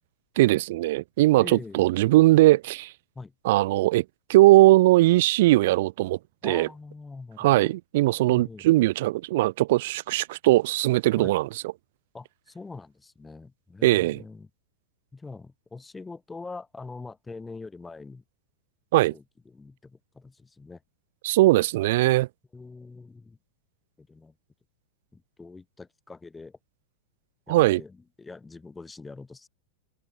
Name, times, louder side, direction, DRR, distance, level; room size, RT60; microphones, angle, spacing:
voice 1, 0.4-2.9 3.4-4.0 4.3-6.7 7.4-11.5 13.8-14.2 18.9-19.1 21.2-22.3 27.5-27.8, right 17 dB, 60° right, 0.4 m, -20 dB
voice 2, 1.4-1.8 3.1-3.3 6.4-7.7 8.2-8.7 11.1-11.4 12.1-14.5 15.1-18.2 19.1-20.8 22.5-23.4 24.0-24.3 25.1-26.6 27.5-29.5, left 3 dB, 10° left, 2.5 m, -43 dB
figure-of-eight pair, 95°, 0 cm